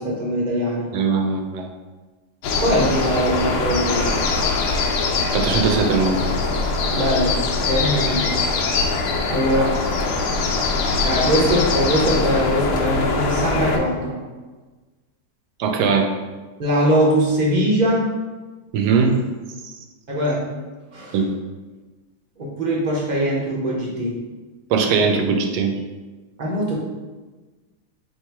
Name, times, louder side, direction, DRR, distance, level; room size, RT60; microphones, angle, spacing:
voice 1, 0.0-0.9 2.6-4.1 6.9-7.4 7.7-8.3 9.3-9.8 11.0-14.2 16.6-18.1 20.1-20.5 20.9-21.2 22.4-24.1 26.4-26.8, equal, 35° right, -4 dB, 0.8 m, -21 dB
voice 2, 0.9-1.7 5.3-6.2 15.6-16.1 18.7-19.1 21.1-21.3 24.7-25.7, right 5 dB, 80° right, 4 dB, 1.1 m, -20 dB
sound 1, 2.4-13.8, left 3 dB, 75° left, 1.1 m, -22 dB
3.1 x 2.9 x 4.5 m, 1.3 s
omnidirectional pair, 1.8 m